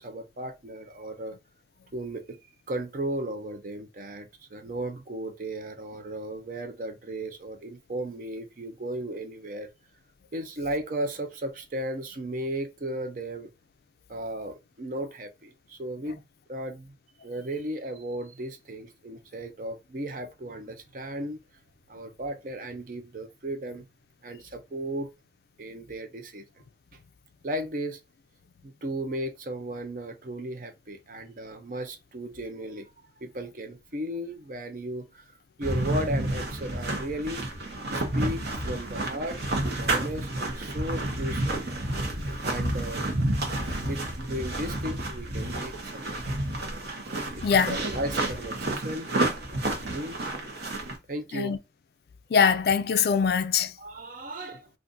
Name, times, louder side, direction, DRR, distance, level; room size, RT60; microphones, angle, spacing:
voice 1, 0.0-1.4 1.9-9.7 10.3-13.5 14.1-16.2 16.5-16.9 17.2-21.4 21.9-23.8 24.2-25.1 25.6-26.4 27.4-28.0 28.6-32.9 33.2-35.2 35.6-37.5 37.9-41.7 42.4-43.1 43.7-46.6 47.3-49.3 49.7-50.2 51.1-51.6 53.8-54.7, right 1 dB, 50° right, 0.5 m, -35 dB
sound 1, 35.6-51.0, right 1 dB, 65° right, 0.9 m, -30 dB
voice 2, 47.4-47.8 51.3-51.6 52.3-53.8, left 6 dB, 55° left, 0.3 m, -23 dB
2.6 x 2.5 x 3.7 m
head